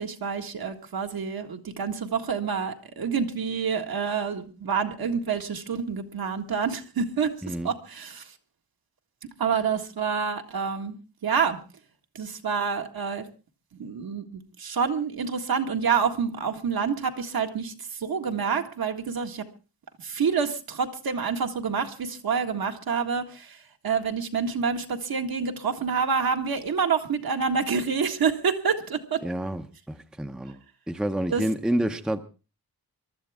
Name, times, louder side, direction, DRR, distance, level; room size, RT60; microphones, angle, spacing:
voice 1, 0.0-8.2 9.4-11.0 11.2-11.6 12.2-13.3 13.8-17.7 18.0-19.4 20.0-23.6 23.8-29.2 31.3-31.4, right 6 dB, 70° right, 1.9 m, -27 dB
voice 2, 29.2-30.6 30.9-32.2, right 1 dB, ahead, 0.7 m, -28 dB
24.0 x 13.0 x 3.6 m
wide cardioid pair, 170°, 38 cm